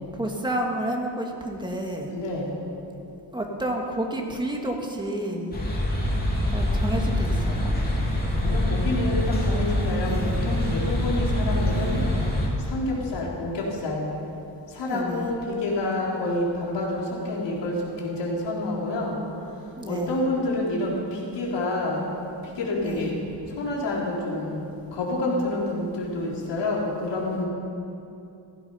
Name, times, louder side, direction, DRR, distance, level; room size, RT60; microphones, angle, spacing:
voice 1, 0.1-2.1 3.3-5.5 6.5-7.8 10.1-10.4 14.9-15.3 19.8-20.2 22.8-23.1, right 1 dB, 10° right, 1 dB, 1.8 m, -30 dB
voice 2, 2.1-2.5 8.4-10.1 10.4-12.0 12.7-14.0 14.7-19.2 19.9-22.1 22.6-23.2 23.6-24.6 24.9-27.5, left 2 dB, 75° left, -3 dB, 3.9 m, -28 dB
sound 1, 5.5-12.5, left 1 dB, 20° left, 2.8 m, -25 dB
16.5 x 15.5 x 5.6 m, 2.8 s
cardioid pair, 145°, 43 cm